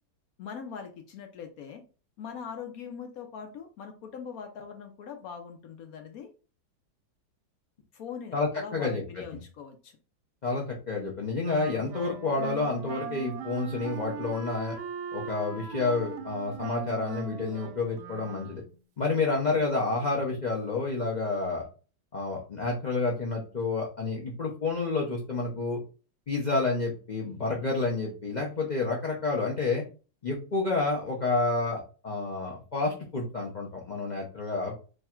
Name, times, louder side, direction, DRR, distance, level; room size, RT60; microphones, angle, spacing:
voice 1, 0.4-1.8 2.2-6.3 7.9-10.0, left 7 dB, 65° left, 5 dB, 0.9 m, -41 dB
voice 2, 8.3-9.0 10.4-14.8 15.1-18.6 19.0-21.7 22.1-25.8 26.3-29.8 30.2-34.7, left 3 dB, 85° left, -1 dB, 0.4 m, -29 dB
Wind instrument woodwind instrument, 11.4-18.8, right 7 dB, 75° right, 1.2 m, -40 dB
3.1 x 2.4 x 4.3 m, 0.36 s
omnidirectional pair, 1.9 m